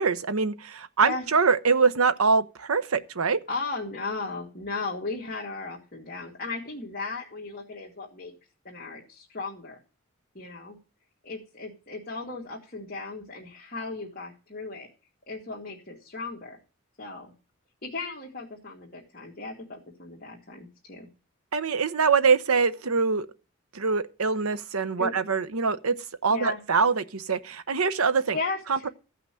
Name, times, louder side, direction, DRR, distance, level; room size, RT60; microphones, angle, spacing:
voice 1, 0.0-3.4 21.5-23.3 23.7-25.9 26.2-28.4 28.7-28.9, right 5 dB, 85° right, 0.9 m, -24 dB
voice 2, 3.5-8.3 8.6-9.8 10.3-10.8 11.2-14.9 15.3-16.6 17.0-17.3 17.8-21.1 25.0-25.1 26.3-26.6 28.3-28.9, left 3 dB, 40° left, 2.2 m, -36 dB
14.5 x 5.9 x 7.5 m
head